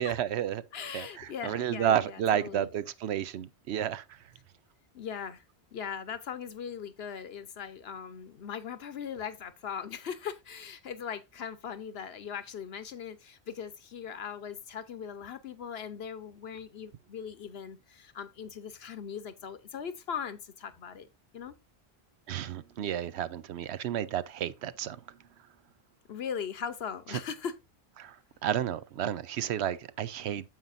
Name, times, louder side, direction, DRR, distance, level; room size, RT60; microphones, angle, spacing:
voice 1, 0.0-0.6 0.9-4.2 22.3-25.0 27.1-27.2 28.0-28.2 28.4-30.5, right 10 dB, 80° right, 0.9 m, -31 dB
voice 2, 0.7-2.7 4.9-5.4 5.7-21.1 21.3-21.5 26.1-27.5, left 7 dB, 75° left, 1.1 m, -39 dB
9.2 x 7.5 x 2.6 m
omnidirectional pair, 1.1 m